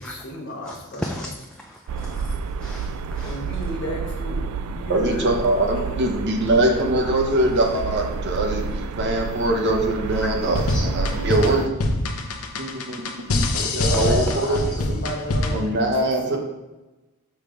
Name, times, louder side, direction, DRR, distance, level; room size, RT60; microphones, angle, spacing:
voice 1, 0.0-1.2 3.2-5.3 5.7-6.2 13.7-16.4, right 1 dB, 55° left, -1 dB, 1.2 m, -33 dB
voice 2, 0.6-3.6 10.0-10.8 13.6-14.6, left 1 dB, 5° left, 0 dB, 0.4 m, -36 dB
sound 1, 1.9-11.7, right 5 dB, 80° right, 0.4 m, -30 dB
voice 3, 4.9-10.6 10.9-11.6 12.6-13.0 13.3-14.6 15.5-16.4, right 1 dB, 50° right, 2 dB, 0.9 m, -22 dB
sound 2, 10.5-15.7, left 2 dB, 80° left, 0.7 m, -24 dB
5.8 x 3.3 x 5.0 m, 1.1 s
head